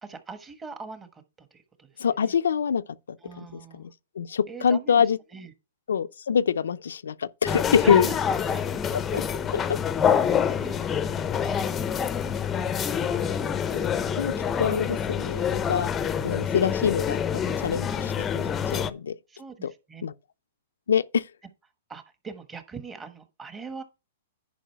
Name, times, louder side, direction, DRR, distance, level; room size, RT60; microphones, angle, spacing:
voice 1, 0.0-2.4 3.2-3.9 4.5-5.5 7.7-8.2 9.6-9.7 10.4-11.2 11.9-13.5 19.3-20.0 21.9-23.8, right 4 dB, 15° right, 1.2 m, -42 dB
voice 2, 2.0-2.8 3.1-3.9 4.2-5.2 5.9-8.1 9.1-9.2 9.5-9.6 13.7-14.3 14.6-15.9 16.2-19.1 19.6-19.7 20.0-20.1 20.9-21.3, left 7 dB, 85° left, 0.5 m, -25 dB
sound 1, 7.5-18.9, left 7 dB, 15° left, 0.6 m, -26 dB
10.5 x 5.0 x 4.5 m
hypercardioid pair, 145°, 0 cm